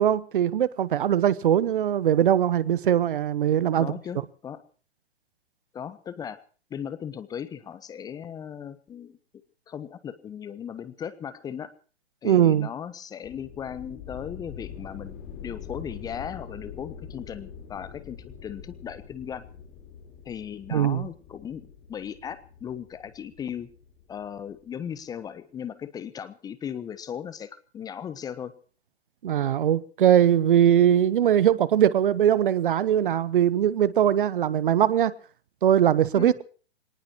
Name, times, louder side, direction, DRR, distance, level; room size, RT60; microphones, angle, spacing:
voice 1, 0.0-3.9 12.2-12.7 20.7-21.1 29.2-35.1 35.6-36.4, right 10 dB, 50° right, 1.2 m, -21 dB
voice 2, 3.8-4.6 5.7-6.4 6.7-9.2 9.7-11.7 12.2-15.2 15.4-19.4 20.2-21.6 21.9-23.7 24.1-28.5 36.2-36.4, left 8 dB, 10° left, 1.0 m, -37 dB
sound 1, 13.2-24.7, left 7 dB, 25° left, 4.0 m, -44 dB
26.0 x 19.0 x 3.0 m
figure-of-eight pair, 125°, 32 cm